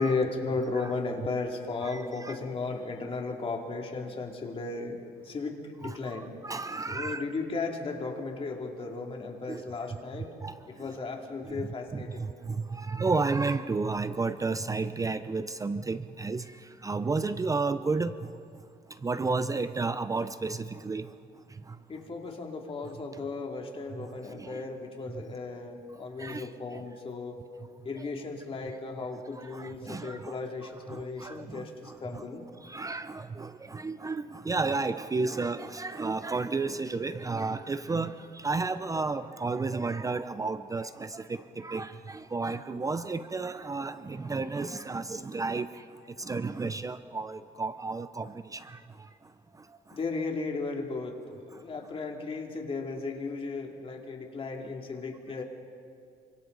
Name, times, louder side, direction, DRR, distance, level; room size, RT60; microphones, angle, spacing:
voice 1, 0.0-6.3 6.9-10.3 10.7-12.3 21.9-27.4 27.8-32.4 49.9-55.4, left 3 dB, 35° left, 2 dB, 2.8 m, -35 dB
voice 2, 1.8-2.4 5.8-7.2 9.5-9.6 10.1-10.6 11.5-18.3 19.0-21.1 21.7-21.8 23.9-24.1 24.4-24.7 26.2-26.8 28.0-28.1 29.4-30.4 30.9-32.2 32.6-45.8 46.2-48.8, right 3 dB, 20° right, 12 dB, 0.6 m, -32 dB
27.5 x 25.0 x 4.0 m, 2.3 s
cardioid pair, 110°, 17 cm